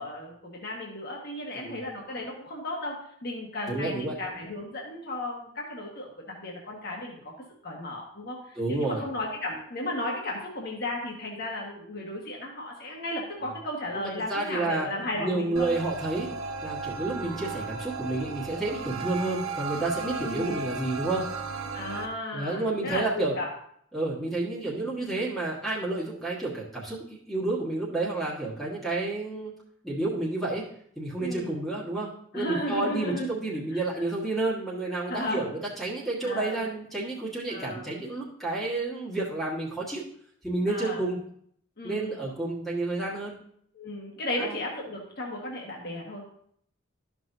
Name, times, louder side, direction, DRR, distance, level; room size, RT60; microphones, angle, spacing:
voice 1, 0.0-7.3 7.6-15.7 17.1-17.3 20.0-20.7 21.7-23.5 31.2-31.6 32.3-33.3 33.9-34.0 35.1-35.5 36.2-36.6 37.5-37.9 40.7-41.0 41.8-42.2 43.7-46.3, left 1 dB, 50° left, -1 dB, 1.5 m, -35 dB
voice 2, 3.7-4.1 8.6-9.0 13.9-14.9 15.2-16.3 16.6-21.2 22.3-23.3 23.9-29.5 29.8-30.6 31.0-40.0 40.4-41.2 41.8-43.3 44.4-44.6, right 2 dB, ahead, -6 dB, 1.5 m, -30 dB
sound 1, 15.6-22.1, right 4 dB, 80° right, 0.8 m, -35 dB
12.5 x 6.0 x 2.7 m, 0.66 s
head